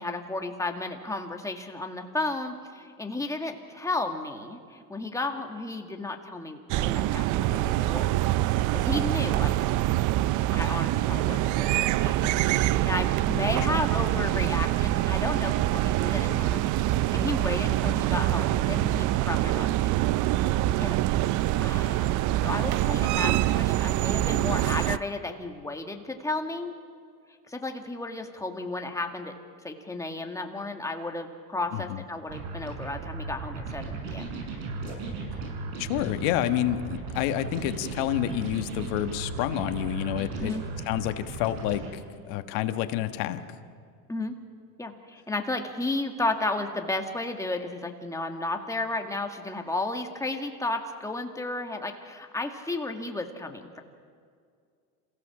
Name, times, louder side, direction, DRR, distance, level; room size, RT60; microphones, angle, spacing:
voice 1, 0.0-8.1 8.7-9.5 10.5-20.4 20.8-21.0 21.6-26.7 27.5-29.3 29.6-34.3 40.4-40.6 44.1-44.4 44.8-53.8, left 2 dB, 5° left, 4 dB, 2.0 m, -33 dB
sound 1, 6.7-25.0, right 15 dB, 45° right, 0.6 m, -25 dB
sound 2, 32.3-41.9, right 4 dB, 75° right, 6.3 m, -36 dB
voice 2, 35.8-40.5 40.9-42.0 42.3-43.4, left 13 dB, 65° left, 8 dB, 1.6 m, -29 dB
27.5 x 16.0 x 7.3 m, 2.2 s
supercardioid pair, 115°, 43 cm